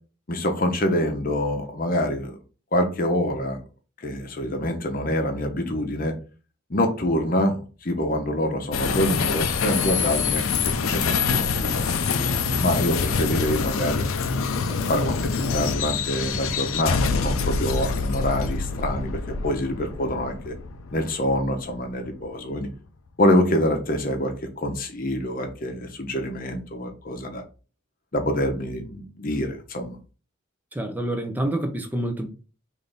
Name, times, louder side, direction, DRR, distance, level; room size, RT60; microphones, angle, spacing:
voice 1, 0.3-2.4 2.7-3.6 4.0-6.2 6.7-12.0 12.6-14.1 14.7-20.6 20.9-22.7 23.2-27.4 28.1-30.0, left 1 dB, 45° left, 0.7 m, -26 dB
sound 1, 8.7-22.1, left 5 dB, 90° left, 0.4 m, -26 dB
voice 2, 30.7-32.3, right 1 dB, 10° right, 0.5 m, -27 dB
3.3 x 2.6 x 3.9 m
head